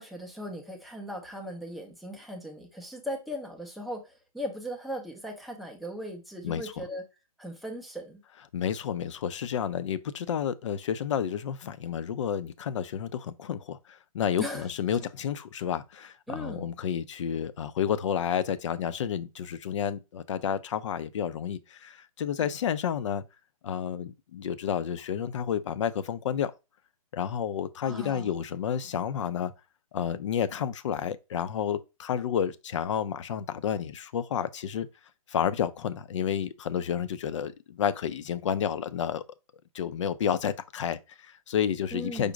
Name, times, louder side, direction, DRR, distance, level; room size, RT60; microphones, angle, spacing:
voice 1, 0.0-7.0 7.4-8.2 14.4-14.7 16.3-16.7 22.4-22.5 27.8-28.3 41.9-42.3, equal, ahead, 0.5 m, -38 dB
voice 2, 6.4-6.8 8.5-23.2 23.6-26.5 27.1-29.5 29.9-34.9 35.3-39.2 39.7-42.3, left 8 dB, 55° left, 0.5 m, -30 dB
5.1 x 2.1 x 4.7 m
hypercardioid pair, 150°, 19 cm